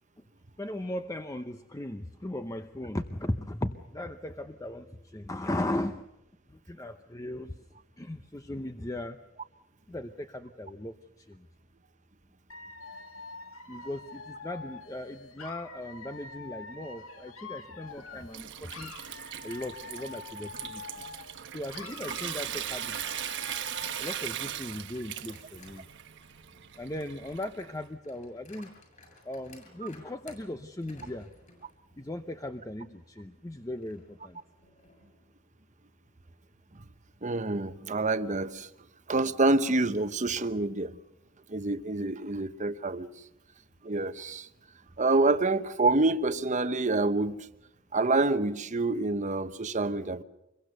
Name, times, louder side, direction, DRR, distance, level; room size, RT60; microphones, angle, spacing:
voice 1, 0.6-4.9 5.1-6.0 6.7-7.5 8.0-9.2 9.9-10.9 11.3-11.4 13.7-18.9 19.4-20.8 21.5-23.0 24.0-25.8 26.8-28.7 29.3-31.3 32.0-34.4, left 1 dB, 15° left, 0.8 m, -37 dB
Dog / Alarm, 12.5-18.4 18.7-21.4 21.7-24.4, left 4 dB, 75° left, 2.1 m, -45 dB
Water tap faucet / Sink (filling or washing) / Trickle dribble, 17.9-27.8, right 10 dB, 60° right, 1.1 m, -39 dB
sound 1, 24.9-25.8 26.2-32.3 32.7-32.8 33.8-35.3, left 2 dB, 35° left, 7.7 m, -57 dB
voice 2, 37.2-38.7 39.1-41.0 41.5-43.1 43.8-44.5 45.0-47.5 47.9-50.2, right 2 dB, 35° right, 1.0 m, -27 dB
26.5 x 22.5 x 6.7 m
head